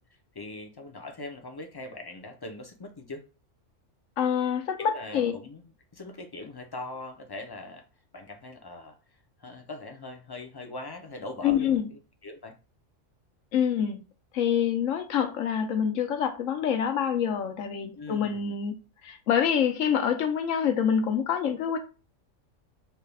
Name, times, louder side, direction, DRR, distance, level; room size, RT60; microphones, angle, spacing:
voice 1, 0.3-3.2 4.8-7.8 8.1-9.0 9.4-12.5 17.9-18.6, left 2 dB, 35° left, 0.4 m, -41 dB
voice 2, 4.2-5.3 11.4-11.9 13.5-14.0 14.3-18.8 19.0-21.8, left 8 dB, 85° left, 1.1 m, -26 dB
5.6 x 2.3 x 3.4 m
omnidirectional pair, 1.3 m